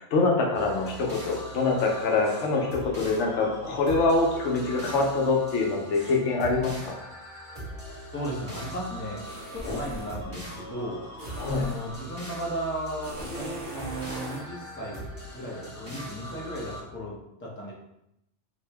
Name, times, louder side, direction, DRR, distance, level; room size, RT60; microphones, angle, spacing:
voice 1, 0.0-6.9 9.7-9.8 11.4-11.6, left 3 dB, 80° left, 0 dB, 0.9 m, -25 dB
sound 1, 0.5-16.8, right 1 dB, 25° right, 1.4 m, -41 dB
voice 2, 8.1-11.0 11.6-17.7, equal, 15° left, -4 dB, 0.5 m, -35 dB
sound 2, 9.2-10.2 11.2-11.9 13.0-14.5, right 1 dB, 60° right, 1.1 m, -39 dB
2.8 x 2.5 x 3.3 m, 0.83 s
omnidirectional pair, 1.2 m